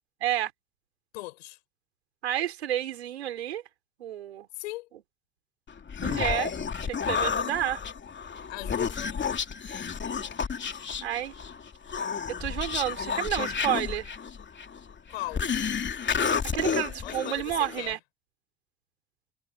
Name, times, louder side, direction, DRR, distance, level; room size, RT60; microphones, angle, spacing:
voice 1, 1.1-1.6 4.6-4.9 8.5-9.2 15.1-15.5 17.0-18.0, left 19 dB, 80° left, 7.0 m, -38 dB
voice 2, 2.2-3.6 4.0-4.5 6.0-6.5 6.8-7.8 11.0-11.3 12.3-14.1 16.5-18.0, right 12 dB, 90° right, 4.5 m, -30 dB
Human voice, 5.7-17.9, left 6 dB, 35° left, 2.8 m, -31 dB
hypercardioid pair, 55°, 31 cm